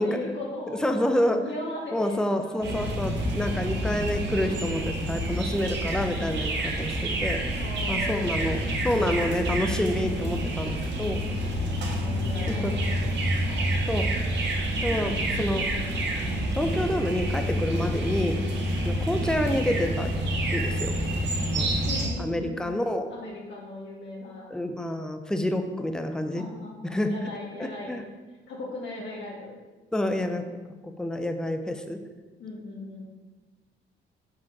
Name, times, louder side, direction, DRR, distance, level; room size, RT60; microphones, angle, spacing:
voice 1, 0.0-2.7 3.5-3.6 4.4-4.6 7.5-8.7 11.3-13.1 13.4-13.9 21.8-22.8 23.1-24.5 26.3-27.9 28.5-29.6 30.1-30.5 32.4-33.0, left 2 dB, 65° left, -4 dB, 2.3 m, -39 dB
voice 2, 0.8-1.4 1.9-7.4 7.9-11.2 12.5-12.7 13.9-14.1 14.8-15.7 16.5-18.4 18.8-20.1 20.5-20.9 21.5-21.7 22.2-23.1 24.5-26.4 26.8-27.3 27.6-28.1 29.9-30.4 30.8-32.0, left 1 dB, 5° left, 6 dB, 0.6 m, -28 dB
sound 1, 2.6-22.1, right 1 dB, 60° right, 1.7 m, -28 dB
7.7 x 3.6 x 5.9 m, 1.3 s
cardioid pair, 90°, 20 cm